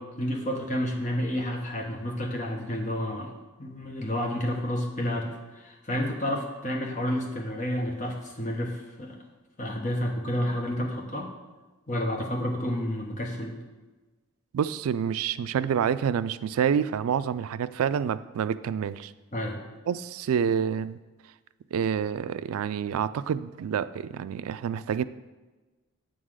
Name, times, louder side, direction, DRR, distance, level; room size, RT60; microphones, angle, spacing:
voice 1, 0.0-3.3 3.6-9.2 9.6-11.3 11.9-13.6 19.3-19.6, equal, 35° left, 1 dB, 1.0 m, -30 dB
voice 2, 14.5-19.1 19.9-21.0 21.7-25.0, right 7 dB, 75° right, 15 dB, 0.3 m, -28 dB
8.0 x 3.9 x 6.3 m, 1.2 s
head